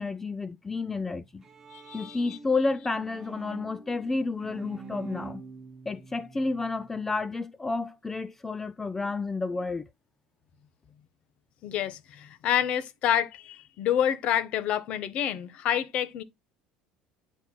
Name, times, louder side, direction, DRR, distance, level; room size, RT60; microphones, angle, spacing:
voice 1, 0.0-1.4 1.9-5.4 5.9-9.9, left 3 dB, 10° left, 0.3 m, -31 dB
Bowed string instrument, 1.1-7.2, right 4 dB, 15° right, 1.5 m, -46 dB
voice 2, 1.7-2.4 11.6-16.2, left 10 dB, 50° left, 0.8 m, -28 dB
9.7 x 4.4 x 2.2 m
cardioid pair, 140°, 3 cm